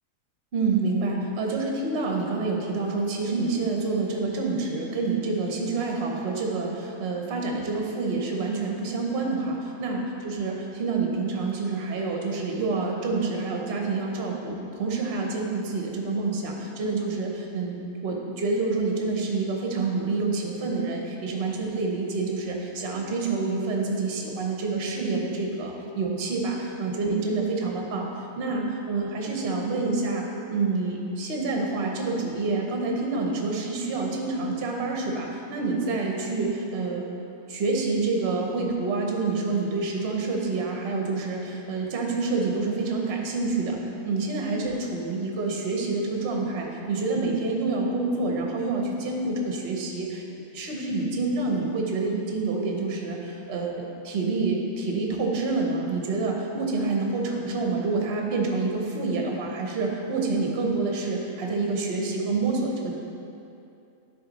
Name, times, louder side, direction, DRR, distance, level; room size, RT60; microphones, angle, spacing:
voice 1, 0.5-14.5 14.8-28.1 28.3-30.2 30.5-37.0 37.5-43.8 44.0-50.2 50.5-62.9, right 3 dB, 50° right, 0 dB, 0.9 m, -27 dB
10.0 x 3.7 x 4.0 m, 2.7 s
omnidirectional pair, 1.6 m